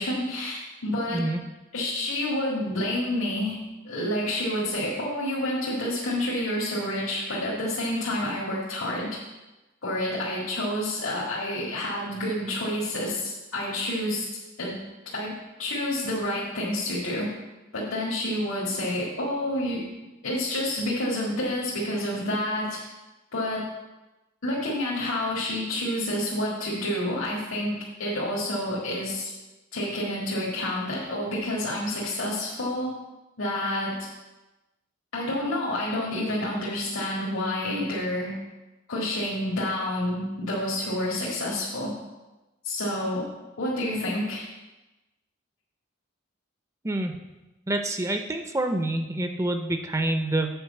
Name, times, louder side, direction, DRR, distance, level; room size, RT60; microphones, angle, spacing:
voice 1, 0.0-1.3 1.7-3.6 3.8-9.1 9.8-14.2 14.6-14.8 15.1-17.3 17.7-19.8 20.2-22.8 23.3-23.7 24.4-27.7 28.0-29.3 29.7-32.9 33.4-34.0 35.1-38.3 38.9-41.9 42.6-43.3 43.6-44.5, left 1 dB, 80° left, -5 dB, 1.9 m, -29 dB
voice 2, 47.7-50.5, right 1 dB, 15° right, 5 dB, 0.5 m, -27 dB
8.0 x 4.9 x 7.0 m, 1.1 s
head